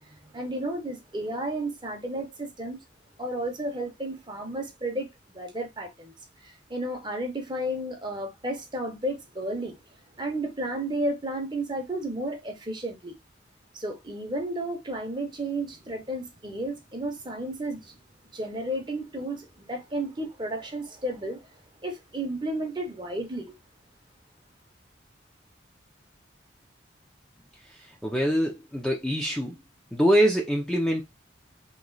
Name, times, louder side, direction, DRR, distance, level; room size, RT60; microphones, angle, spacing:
voice 1, 0.0-2.8 3.2-5.1 5.3-6.1 6.4-9.8 10.2-13.1 13.7-18.0 18.3-21.5 21.8-23.5, right 1 dB, 25° right, 0.9 m, -32 dB
voice 2, 27.7-29.6 29.9-31.0, equal, ahead, 0.6 m, -24 dB
3.1 x 3.1 x 3.8 m
head